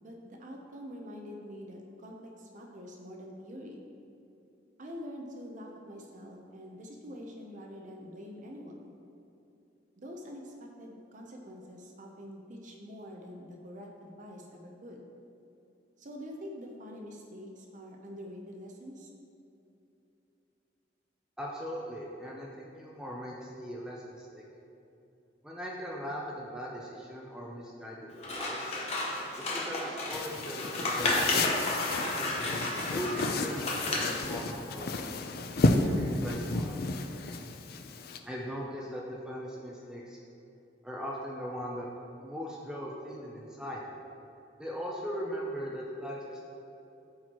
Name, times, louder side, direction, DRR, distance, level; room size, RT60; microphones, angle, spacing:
voice 1, 0.0-3.8 4.8-8.9 10.0-15.0 16.0-19.1, equal, 45° right, 1 dB, 0.7 m, -45 dB
voice 2, 21.4-24.4 25.4-28.7 29.5-31.1 32.1-32.5 32.9-34.9 35.6-37.1 38.3-40.2 40.8-41.9 42.2-43.9 44.6-46.4, equal, 5° right, -3 dB, 0.6 m, -39 dB
Scissors, 28.2-34.3, left 1 dB, 35° left, 1.1 m, -32 dB
sound 1, 30.1-38.2, left 3 dB, 55° left, 0.5 m, -32 dB
13.0 x 4.5 x 3.0 m, 2.8 s
head